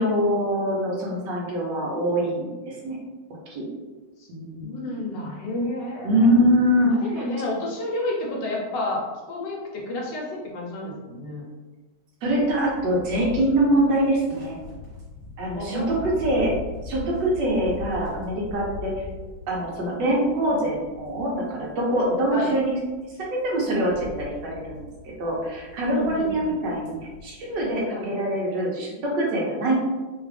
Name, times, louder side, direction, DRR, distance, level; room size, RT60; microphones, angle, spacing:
voice 1, 0.0-3.0 3.5-3.7 4.3-5.0 6.0-7.2 12.2-14.6 15.4-16.5 16.8-18.9 19.5-22.7 23.2-24.8 25.2-29.7, right 1 dB, 70° right, -3 dB, 1.3 m, -24 dB
voice 2, 4.6-6.3 6.9-11.4 15.5-16.4 22.3-22.5 25.9-26.5 27.9-28.1, left 2 dB, 70° left, -3 dB, 1.3 m, -31 dB
sound 1, 12.2-27.9, left 4 dB, 35° right, 1.0 m, -41 dB
3.4 x 2.3 x 3.2 m, 1.2 s
omnidirectional pair, 2.1 m